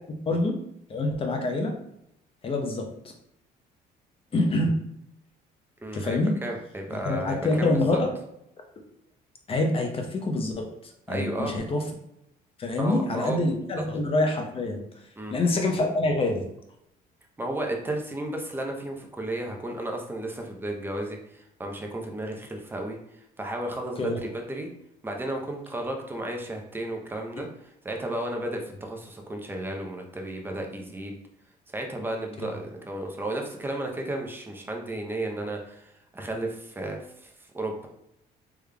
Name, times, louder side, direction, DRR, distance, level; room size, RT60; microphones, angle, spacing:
voice 1, 0.3-0.6 0.9-1.7 2.4-2.9 4.3-4.8 5.9-6.3 7.0-8.1 8.8-8.9 9.5-11.8 12.6-14.8 15.3-16.4 24.0-24.2 32.4-32.5, left 2 dB, 35° left, 3 dB, 0.7 m, -26 dB
voice 2, 5.8-8.0 11.1-11.6 12.8-13.4 15.2-15.3 17.4-23.0 23.4-24.7 25.0-27.5 27.8-31.2 31.7-37.9, right 1 dB, 10° right, 2 dB, 0.6 m, -33 dB
3.5 x 3.3 x 2.2 m, 0.78 s
cardioid pair, 110°, 17 cm